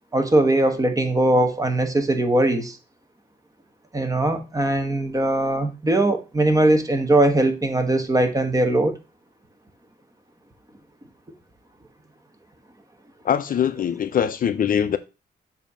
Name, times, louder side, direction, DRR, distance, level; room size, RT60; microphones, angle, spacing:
voice 1, 0.1-2.8 3.9-9.0, right 1 dB, 20° right, 1.1 m, -20 dB
voice 2, 13.2-15.0, left 8 dB, 55° left, 0.5 m, -22 dB
7.2 x 2.8 x 5.5 m
cardioid pair, 100°, 18 cm